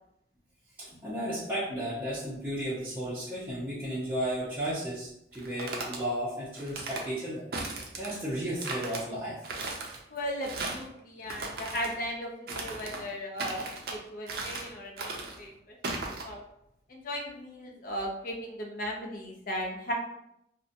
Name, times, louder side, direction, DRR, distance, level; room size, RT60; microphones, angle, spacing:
voice 1, 0.8-9.4, equal, 10° right, -11 dB, 0.6 m, -34 dB
sound 1, 5.3-6.0 6.6-7.1 7.5-8.2 8.6-9.0 9.4-10.0 10.4-10.9 11.3-11.9 12.5-13.0 13.4-14.0 14.3-14.7 15.0-15.4 15.8-16.2, right 3 dB, 55° right, 0.4 m, -36 dB
voice 2, 10.1-12.3 12.5-15.1 15.4-15.5 16.2-16.4 16.9-19.9, equal, 50° left, 0 dB, 0.5 m, -36 dB
2.6 x 2.1 x 2.5 m, 0.80 s
head